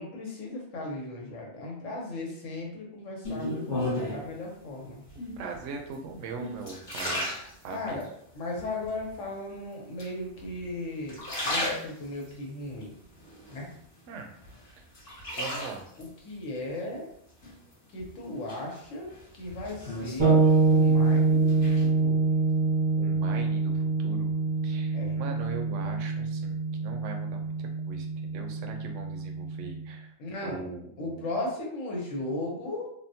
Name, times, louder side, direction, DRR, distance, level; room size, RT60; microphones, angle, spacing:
voice 1, 0.0-5.0 7.7-8.1 8.3-12.9 13.5-13.7 16.0-17.1 17.9-22.2 24.9-25.3 30.2-30.7 31.0-32.9, left 2 dB, 85° left, -2 dB, 1.3 m, -36 dB
sound 1, 3.2-4.3 5.1-5.6 6.1-8.1 8.6-9.2 10.0-10.7 11.0-12.3 12.8-14.0 14.4-16.1 17.4-18.0 18.5-21.1 21.3-21.9, left 1 dB, 45° left, 1.2 m, -34 dB
voice 2, 5.4-8.0 14.1-14.3 15.4-15.8 23.0-24.3 24.6-30.1 30.4-31.3, right 4 dB, 75° right, 3 dB, 0.9 m, -41 dB
sound 2, 20.2-29.9, right 4 dB, 40° right, 0.5 m, -25 dB
3.6 x 2.2 x 2.7 m, 0.69 s
omnidirectional pair, 1.3 m